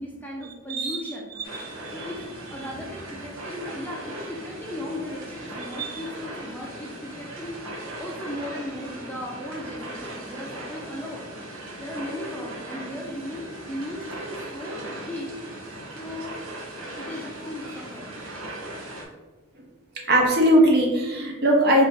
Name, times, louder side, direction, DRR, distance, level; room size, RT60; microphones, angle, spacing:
voice 1, 0.0-1.3 1.9-2.2 2.5-11.3 11.8-15.3 15.6-15.7 15.9-16.4 17.0-18.1, left 1 dB, 10° left, -3 dB, 0.5 m, -36 dB
sound 1, 1.4-19.1, right 1 dB, 90° right, 0.8 m, -38 dB
voice 2, 1.5-2.1 5.8-6.0 20.1-21.9, right 1 dB, 50° right, -1 dB, 0.8 m, -20 dB
3.9 x 2.6 x 3.9 m, 1.2 s
head